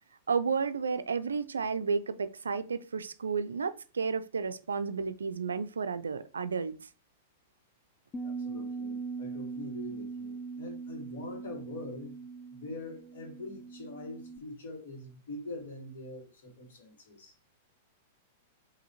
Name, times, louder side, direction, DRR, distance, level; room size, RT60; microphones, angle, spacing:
voice 1, 0.3-6.7, right 5 dB, 80° right, 0.3 m, -32 dB
Bass guitar, 8.1-14.4, right 4 dB, 25° left, 0.3 m, -40 dB
voice 2, 8.2-12.2 12.6-17.3, left 2 dB, 65° left, 1.6 m, -44 dB
5.0 x 2.7 x 2.8 m
figure-of-eight pair, 100°, 0 cm